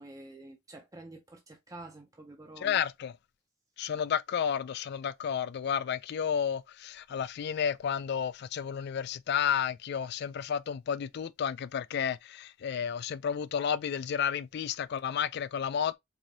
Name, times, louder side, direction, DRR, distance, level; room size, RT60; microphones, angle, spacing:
voice 1, 0.0-2.8, right 2 dB, 15° right, 0.5 m, -48 dB
voice 2, 2.6-3.1 3.8-16.0, left 8 dB, 50° left, 0.3 m, -31 dB
4.7 x 2.7 x 2.6 m
head